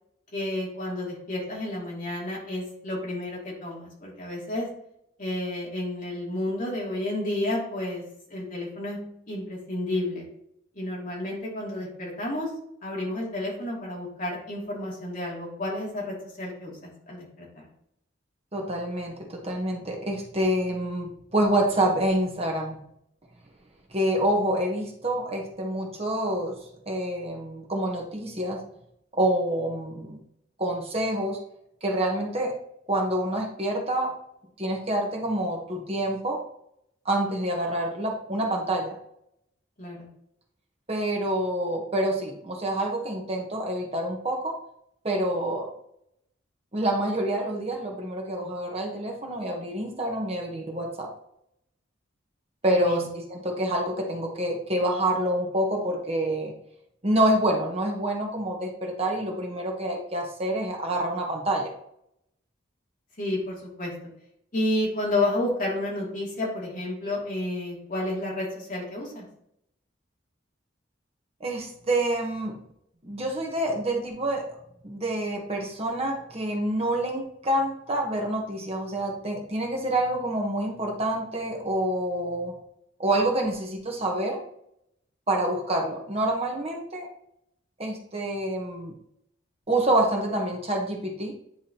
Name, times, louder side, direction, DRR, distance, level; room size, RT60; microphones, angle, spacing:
voice 1, 0.3-4.7 5.2-8.0 8.3-9.0 9.3-10.2 10.7-12.5 12.8-17.7 39.8-40.1 52.7-53.1 63.2-63.9 64.5-69.2, left 1 dB, 45° left, -4 dB, 2.7 m, -31 dB
voice 2, 18.5-22.8 23.9-26.6 26.9-28.6 29.1-30.2 30.6-31.4 31.8-32.5 32.9-34.1 34.6-36.4 37.0-39.0 40.9-44.6 45.0-45.7 46.7-51.1 52.6-56.5 57.0-61.7 71.4-72.6 73.0-74.4 74.8-82.5 83.0-84.4 85.3-87.1 87.8-88.9 89.7-91.3, right 1 dB, 30° right, 0 dB, 1.1 m, -27 dB
9.7 x 4.7 x 2.9 m, 0.75 s
head